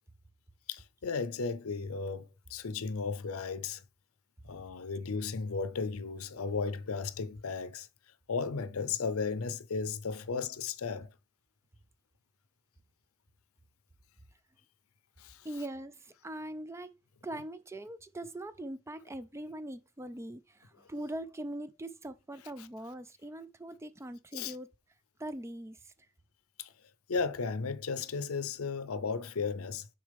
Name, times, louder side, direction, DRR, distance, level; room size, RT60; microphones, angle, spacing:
voice 1, 0.7-3.8 4.4-7.9 8.3-11.1 15.2-15.5 24.3-24.6 26.6-26.7 27.1-29.9, left 5 dB, 70° left, 0.6 m, -35 dB
voice 2, 15.4-16.9 17.2-24.7 25.2-25.9, right 1 dB, 10° right, 0.4 m, -42 dB
6.3 x 4.5 x 3.4 m
head